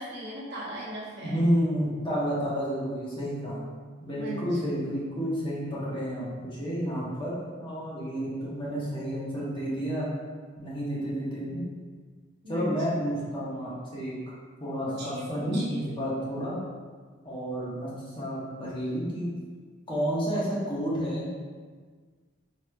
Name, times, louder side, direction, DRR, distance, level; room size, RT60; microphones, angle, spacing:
voice 1, 0.0-1.5 4.1-4.7 12.4-13.0 14.8-15.8, equal, 55° right, -6 dB, 0.9 m, -38 dB
voice 2, 1.2-3.6 4.0-10.1 10.6-11.6 12.5-14.1 14.6-16.6 17.2-17.9 18.2-19.3 19.9-21.3, equal, 25° left, -7 dB, 1.0 m, -30 dB
4.7 x 2.9 x 2.2 m, 1.5 s
head